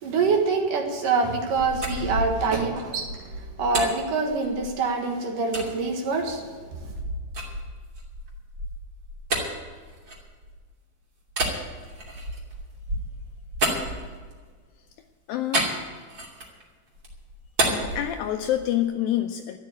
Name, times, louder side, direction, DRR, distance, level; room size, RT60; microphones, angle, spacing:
voice 1, 0.0-3.2 3.6-6.4, right 4 dB, 60° right, 3 dB, 2.9 m, -25 dB
sound 1, 1.5-4.9 5.5-5.7 6.3-10.7 11.3-14.5 15.5-16.6 17.0-18.7, right 1 dB, 30° right, 3.0 m, -31 dB
voice 2, 15.3-15.7 17.7-19.6, left 12 dB, 85° left, 6 dB, 2.1 m, -27 dB
13.0 x 9.6 x 8.4 m, 1.6 s
omnidirectional pair, 4.7 m